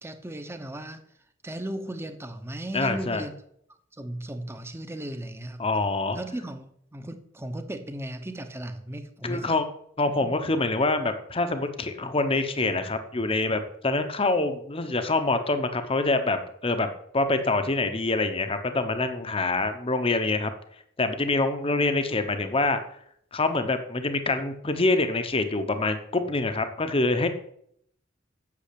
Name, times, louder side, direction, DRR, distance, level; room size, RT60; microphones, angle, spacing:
voice 1, 0.0-1.0 1.4-3.3 4.0-5.6 6.1-9.6 10.2-10.5, right 1 dB, 15° right, 8 dB, 1.0 m, -36 dB
voice 2, 2.7-3.2 5.6-6.2 9.2-9.7 10.0-16.9 17.1-20.5 21.0-22.8 23.3-27.3, left 2 dB, 30° left, 8 dB, 1.0 m, -25 dB
8.5 x 7.0 x 8.5 m, 0.69 s
head